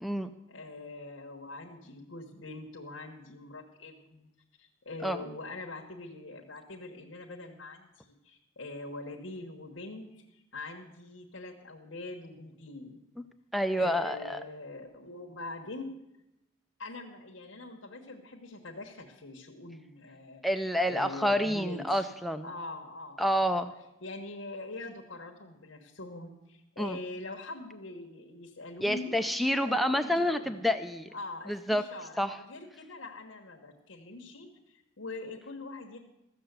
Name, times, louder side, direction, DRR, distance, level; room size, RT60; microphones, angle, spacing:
voice 1, 0.5-4.3 4.6-13.0 13.8-16.0 16.8-20.4 20.8-22.1 22.4-23.6 24.0-29.2 29.5-30.7 31.1-36.0, left 2 dB, 75° left, 0 dB, 1.2 m, -43 dB
voice 2, 13.5-14.4 20.4-22.5 23.2-23.7 26.8-27.0 28.8-31.1 31.5-31.8 32.2-32.4, equal, ahead, 7 dB, 0.4 m, -28 dB
14.5 x 6.7 x 8.0 m, 0.91 s
head